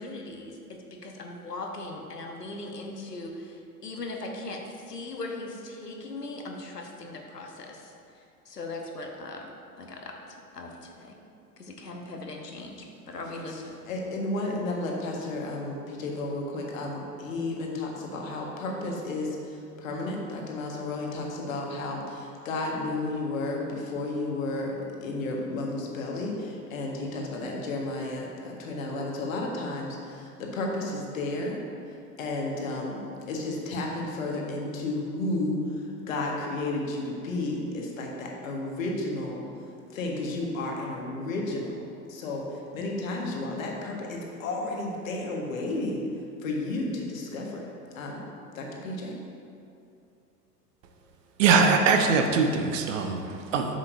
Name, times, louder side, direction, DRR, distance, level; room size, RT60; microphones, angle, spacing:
voice 1, 0.0-9.5 9.8-11.1 11.6-13.6, left 2 dB, 80° left, 2 dB, 1.1 m, -39 dB
voice 2, 13.2-13.5 13.8-24.8 25.0-31.6 31.9-48.3 48.5-49.1, left 2 dB, 55° left, 0 dB, 1.6 m, -32 dB
voice 3, 51.4-53.8, right 5 dB, 55° right, 4 dB, 0.9 m, -22 dB
10.0 x 7.4 x 2.7 m, 2.6 s
figure-of-eight pair, 90°, 47 cm